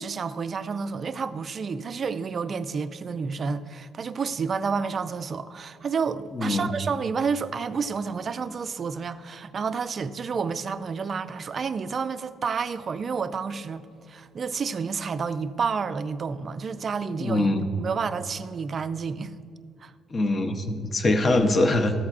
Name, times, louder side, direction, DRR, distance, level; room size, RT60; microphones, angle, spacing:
voice 1, 0.0-17.5 17.8-19.3 19.8-19.9, right 5 dB, 35° right, 0.3 m, -30 dB
voice 2, 6.3-6.7 17.2-17.6 20.1-21.9, left 2 dB, 30° left, 0.6 m, -23 dB
14.0 x 8.3 x 2.4 m
cardioid pair, 140°, 0 cm